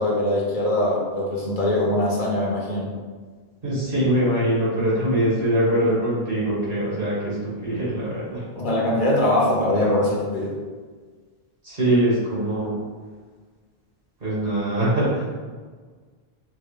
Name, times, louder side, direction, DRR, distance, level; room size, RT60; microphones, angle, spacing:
voice 1, 0.0-2.9 8.5-10.6, left 1 dB, 55° left, -3 dB, 0.9 m, -22 dB
voice 2, 3.6-8.4 11.6-12.7 14.2-15.2, right 1 dB, 65° right, -9 dB, 1.9 m, -22 dB
4.6 x 2.2 x 3.1 m, 1.5 s
omnidirectional pair, 1.0 m